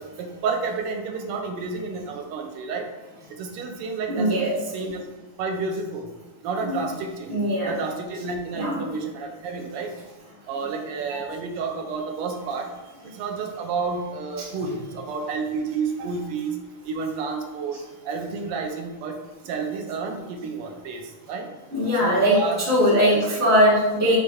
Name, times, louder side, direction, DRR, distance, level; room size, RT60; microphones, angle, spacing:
voice 1, 0.0-2.9 3.4-4.4 4.7-5.0 5.4-6.1 6.4-7.3 7.7-9.9 10.5-12.7 13.1-16.6 16.8-17.8 18.1-19.2 19.4-21.0 21.3-21.5 22.0-22.6 23.1-23.4, right 4 dB, 90° right, 4 dB, 1.6 m, -30 dB
voice 2, 4.1-4.5 6.7-6.8 7.3-7.7 8.5-8.8 11.1-11.2 14.4-14.5 21.7-24.2, equal, 15° left, -8 dB, 0.5 m, -20 dB
6.2 x 3.0 x 2.3 m, 1.2 s
omnidirectional pair, 2.4 m